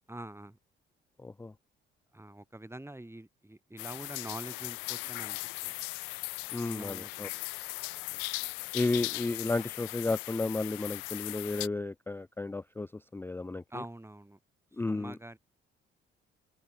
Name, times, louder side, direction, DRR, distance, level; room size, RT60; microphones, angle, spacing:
voice 1, 0.1-0.6 2.1-5.8 6.7-7.3 13.7-14.4 14.7-15.4, right 1 dB, 10° right, 5.6 m, -45 dB
voice 2, 1.2-1.5 6.5-7.3 8.7-12.9 13.1-13.6 14.8-15.1, left 3 dB, 5° left, 0.5 m, -33 dB
sound 1, 3.8-11.7, left 40 dB or more, 65° left, 0.5 m, -38 dB
open air
figure-of-eight pair, 45°, 30 cm